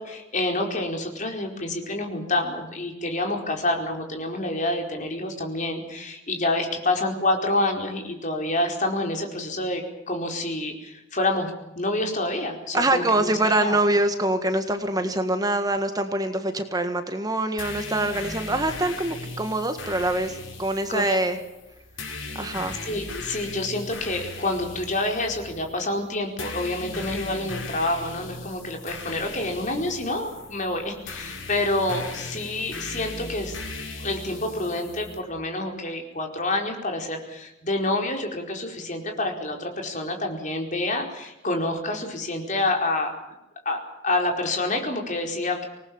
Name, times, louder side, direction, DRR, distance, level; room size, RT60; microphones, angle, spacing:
voice 1, 0.0-11.5 11.8-13.8 20.9-21.2 22.9-33.6 34.0-43.2 43.6-45.7, left 2 dB, 40° left, 3 dB, 4.6 m, -28 dB
voice 2, 12.7-21.4 22.3-22.8, right 1 dB, 20° right, 8 dB, 1.6 m, -24 dB
sound 1, 17.6-35.2, left 3 dB, 80° left, 6.2 m, -38 dB
26.5 x 19.5 x 7.2 m, 0.95 s
head